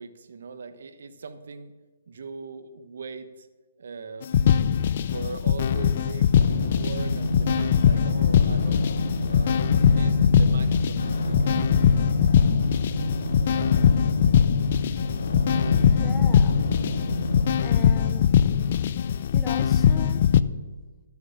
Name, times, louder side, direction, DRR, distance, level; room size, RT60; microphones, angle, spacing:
voice 1, 0.0-1.7 2.1-3.5 3.8-4.3 5.1-8.8 9.2-11.6, right 5 dB, 70° right, 9 dB, 1.1 m, -40 dB
sound 1, 4.2-20.4, left 8 dB, 50° left, 0.4 m, -22 dB
sound 2, 6.3-17.5, left 1 dB, 80° left, 1.8 m, -29 dB
voice 2, 16.0-16.6 17.6-18.4 19.3-20.2, left 5 dB, 10° left, 8 dB, 0.7 m, -39 dB
13.0 x 7.2 x 6.5 m, 1.2 s
hypercardioid pair, 155°, 0 cm